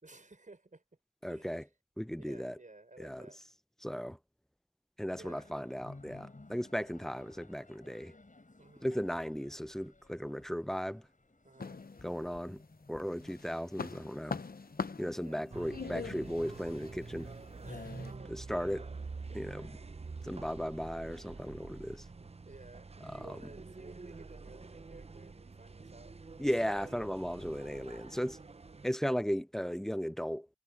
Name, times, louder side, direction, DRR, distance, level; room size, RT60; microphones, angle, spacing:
voice 1, 0.0-0.8 1.3-1.7 2.2-3.4 5.1-5.5 8.6-8.9 11.4-11.8 15.1-15.4 17.6-18.4 19.3-19.6 22.5-26.2, right 2 dB, 60° right, 5.7 m, -55 dB
voice 2, 1.2-1.6 2.0-2.6 3.0-3.3 3.8-4.2 5.0-8.1 8.8-11.1 12.0-12.6 12.9-14.4 15.0-17.3 18.3-18.9 19.3-19.7 20.2-22.1 23.0-23.4 26.4-28.4 28.8-30.5, equal, 5° left, 0.5 m, -36 dB
sound 1, 5.1-17.8, left 2 dB, 60° left, 6.9 m, -57 dB
sound 2, 11.6-12.6 13.0-18.1, left 4 dB, 90° left, 0.8 m, -42 dB
sound 3, 15.5-28.9, right 4 dB, 45° right, 0.6 m, -47 dB
wide cardioid pair, 50°, 15 cm